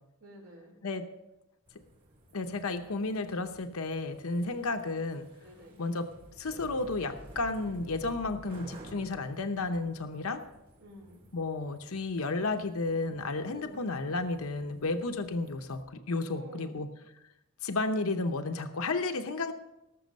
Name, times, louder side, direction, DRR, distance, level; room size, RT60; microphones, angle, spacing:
voice 1, 0.2-0.7 4.4-4.6 5.4-5.8 10.8-11.2 13.4-13.9 14.9-15.2 16.3-16.9, right 1 dB, 70° right, -4 dB, 4.1 m, -51 dB
sound 1, 1.7-15.8, right 1 dB, 45° right, 3.7 m, -53 dB
voice 2, 2.3-5.3 5.8-6.1 6.4-10.4 11.3-16.9 17.6-19.5, left 3 dB, 75° left, 7 dB, 0.8 m, -32 dB
18.5 x 7.0 x 5.3 m, 0.92 s
head